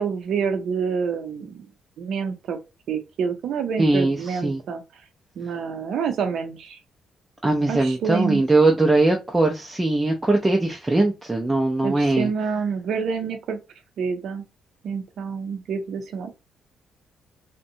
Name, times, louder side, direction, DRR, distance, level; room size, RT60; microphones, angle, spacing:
voice 1, 0.0-1.7 2.0-2.6 2.9-4.8 5.4-6.8 7.7-8.4 11.8-13.6 14.0-14.4 14.8-16.3, right 6 dB, 70° right, 0.5 m, -27 dB
voice 2, 3.8-4.6 7.4-12.3, right 2 dB, 15° right, 0.4 m, -20 dB
2.5 x 2.1 x 2.6 m
cardioid pair, 90°, 0 cm